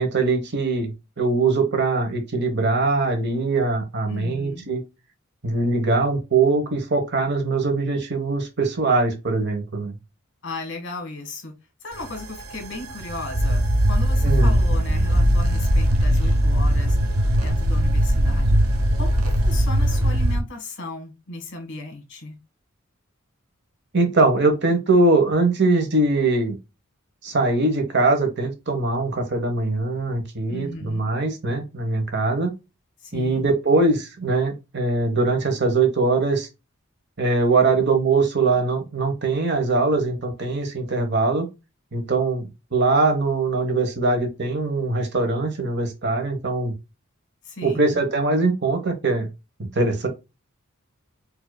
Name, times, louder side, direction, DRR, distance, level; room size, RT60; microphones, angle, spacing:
voice 1, 0.0-4.8 5.4-9.9 14.2-14.6 23.9-26.6 27.2-32.5 33.1-36.5 37.2-41.5 41.9-46.7 47.6-49.3 49.6-50.1, right 3 dB, 55° right, 1.1 m, -22 dB
voice 2, 4.1-4.7 10.4-11.5 11.8-17.0 17.4-18.6 18.9-22.4 30.5-31.1 33.0-33.5 47.4-48.0, left 2 dB, 60° left, 1.5 m, -36 dB
sound 1, 11.9-20.4, equal, 90° right, 0.9 m, -20 dB
4.8 x 2.8 x 2.3 m
head